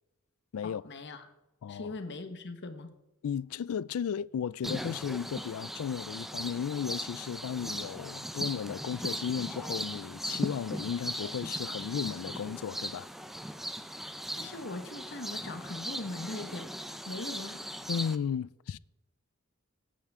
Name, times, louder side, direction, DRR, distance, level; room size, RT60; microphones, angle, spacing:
voice 1, 0.6-1.3 1.7-2.9 14.4-16.7 17.1-17.6, left 2 dB, 55° left, 1.4 m, -40 dB
voice 2, 1.6-2.0 3.2-13.1 17.9-18.8, left 7 dB, 75° left, 0.3 m, -34 dB
sound 1, 4.6-18.2, equal, ahead, 0.5 m, -38 dB
22.5 x 9.1 x 3.7 m
head